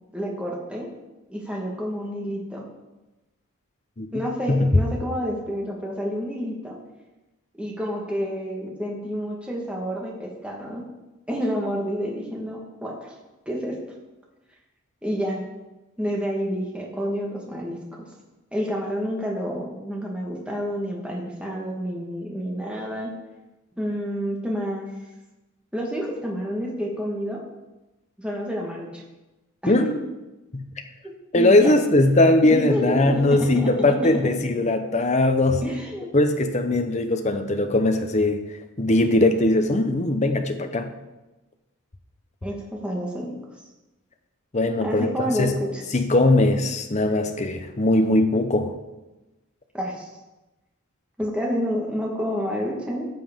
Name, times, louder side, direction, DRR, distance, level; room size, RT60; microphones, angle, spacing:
voice 1, 0.1-0.9 1.3-2.7 4.1-6.8 7.5-10.8 11.3-13.1 13.4-13.8 15.0-15.4 16.0-18.1 18.5-23.1 23.8-24.9 25.7-27.4 28.2-29.0 29.6-29.9 31.3-31.7 32.4-34.2 35.6-36.1 42.4-43.3 44.8-45.8 49.7-50.1 51.2-53.1, equal, 5° right, -2 dB, 1.4 m, -29 dB
voice 2, 31.3-35.6 36.1-38.4 38.8-40.9 44.5-45.5 45.9-48.7, left 2 dB, 30° left, 6 dB, 0.7 m, -20 dB
13.0 x 7.6 x 3.6 m, 1.1 s
head